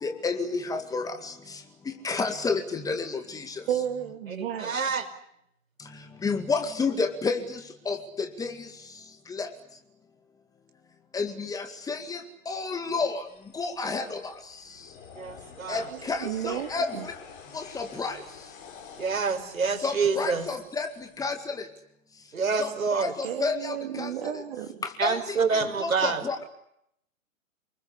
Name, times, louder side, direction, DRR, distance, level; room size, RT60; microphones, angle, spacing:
voice 1, 0.0-1.6 2.0-3.6 6.2-8.7 9.3-9.5 11.1-13.2 13.5-14.3 15.7-17.1 17.5-18.2 19.8-21.7 22.6-22.7 23.0-24.1 24.8-26.4, left 4 dB, 10° left, 6 dB, 2.1 m, -31 dB
voice 2, 3.7-4.8 15.9-17.1 23.2-24.8, right 10 dB, 45° right, 6 dB, 3.0 m, -33 dB
voice 3, 4.4-5.0 15.2-15.9 19.0-20.5 22.3-23.1 25.0-26.2, right 5 dB, 75° right, 8 dB, 5.4 m, -27 dB
sound 1, 13.3-21.2, left 6 dB, 40° left, 6.4 m, -49 dB
29.5 x 21.0 x 8.5 m, 0.74 s
figure-of-eight pair, 130°, 41 cm